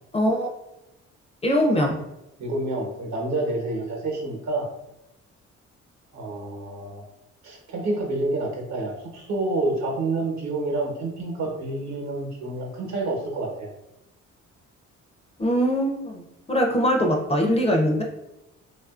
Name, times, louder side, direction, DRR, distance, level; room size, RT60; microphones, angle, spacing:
voice 1, 0.1-0.5 1.4-2.0 15.4-16.2 16.5-18.0, equal, 20° left, 1 dB, 0.4 m, -22 dB
voice 2, 2.4-4.7 6.1-7.0 7.4-13.7, right 2 dB, 65° right, 0 dB, 0.9 m, -28 dB
2.6 x 2.4 x 2.4 m, 0.89 s
cardioid pair, 90°, 30 cm